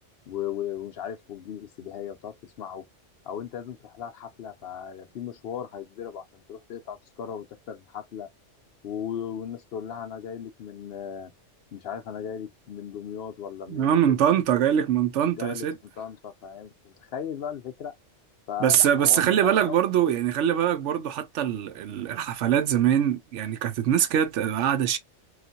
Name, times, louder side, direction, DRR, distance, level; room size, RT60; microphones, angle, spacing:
voice 1, 0.3-2.9 3.2-8.3 8.8-11.3 11.7-14.1 15.4-15.7 16.0-17.9 18.5-19.8 20.1-20.2, left 8 dB, 65° left, 0.7 m, -37 dB
voice 2, 13.7-15.7 18.6-25.0, right 9 dB, 80° right, 0.9 m, -23 dB
3.1 x 2.4 x 2.6 m
omnidirectional pair, 1.2 m